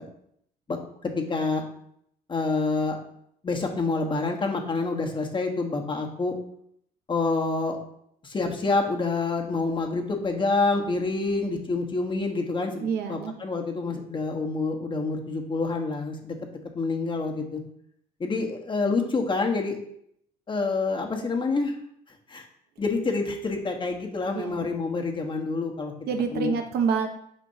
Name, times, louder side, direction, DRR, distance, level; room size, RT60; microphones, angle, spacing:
voice 1, 0.7-1.6 2.3-3.0 3.4-6.3 7.1-7.8 8.2-17.6 18.2-19.8 20.5-21.7 22.3-22.4 22.8-25.9 26.3-26.5, left 3 dB, 30° left, 2 dB, 1.3 m, -27 dB
voice 2, 12.8-13.4 24.3-24.7 26.1-27.1, right 6 dB, 70° right, 6 dB, 1.0 m, -27 dB
8.5 x 5.1 x 2.8 m, 0.70 s
cardioid pair, 110°, 17 cm